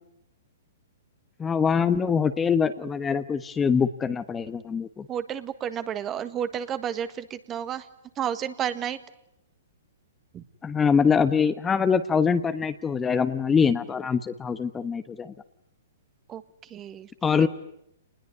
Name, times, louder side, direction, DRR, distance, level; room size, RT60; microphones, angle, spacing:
voice 1, 1.4-5.1 10.6-15.3 17.2-17.5, left 6 dB, 15° left, 10 dB, 1.2 m, -24 dB
voice 2, 5.1-7.9 8.2-9.0 10.3-10.4 16.3-16.4 16.7-17.1 17.4-17.5, right 9 dB, 25° right, 11 dB, 1.6 m, -31 dB
28.0 x 20.5 x 9.7 m, 0.79 s
hypercardioid pair, 130°, 0 cm